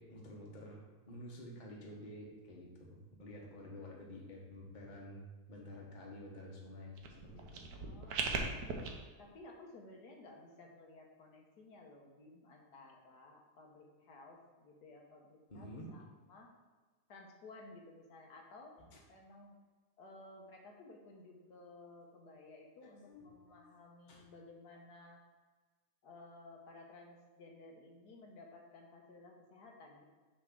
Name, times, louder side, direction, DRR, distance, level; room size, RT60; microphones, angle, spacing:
voice 1, 0.0-7.7 15.5-15.9 22.8-23.7 24.1-24.2, left 1 dB, 30° left, -2 dB, 1.2 m, -50 dB
sound 1, 7.0-8.9, right 4 dB, 70° right, 1.3 m, -39 dB
voice 2, 7.8-16.5 17.1-18.8 19.1-19.6 20.0-25.2 26.0-30.0, left 2 dB, 75° left, 1 dB, 1.5 m, -56 dB
6.5 x 3.4 x 6.0 m, 1.3 s
omnidirectional pair, 1.8 m